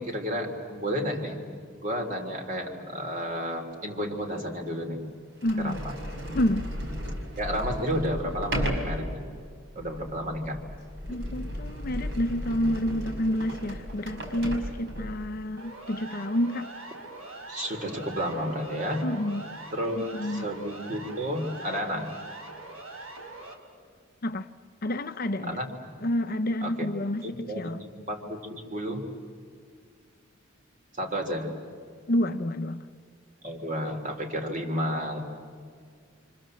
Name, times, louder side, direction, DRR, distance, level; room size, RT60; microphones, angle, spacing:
voice 1, 0.0-1.4 1.8-5.0 5.6-5.9 7.4-9.2 9.7-10.6 11.1-11.2 17.5-19.1 19.7-22.1 25.4-26.0 26.6-26.9 27.2-29.0 30.9-31.5 33.4-35.2, equal, 35° right, 3.4 m, -32 dB
Sliding door, 4.0-4.1 4.8-4.9 5.4-15.3, equal, 55° right, 5.5 m, -35 dB
voice 2, 5.4-5.8 6.3-6.7 11.1-16.7 19.0-19.5 20.0-20.5 24.2-24.5 24.8-25.6 26.0-27.8 32.1-32.9, left 1 dB, 45° left, 0.7 m, -29 dB
Siren, 15.6-23.5, right 2 dB, 85° right, 3.3 m, -42 dB
30.0 x 25.5 x 7.7 m
head